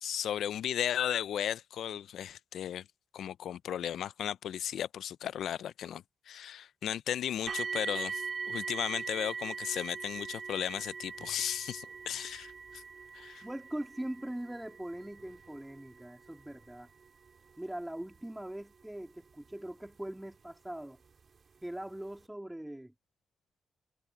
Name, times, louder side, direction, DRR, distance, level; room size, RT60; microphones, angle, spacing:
voice 1, 0.0-2.9 3.1-12.8 13.1-13.4, left 10 dB, 80° left, 0.4 m, -35 dB
sound 1, 7.5-20.3 21.2-21.3 21.9-22.0, right 5 dB, 50° right, 2.8 m, -42 dB
voice 2, 13.4-16.9 17.6-21.0 21.6-22.9, right 1 dB, 10° right, 2.7 m, -41 dB
cardioid pair, 75°, 0 cm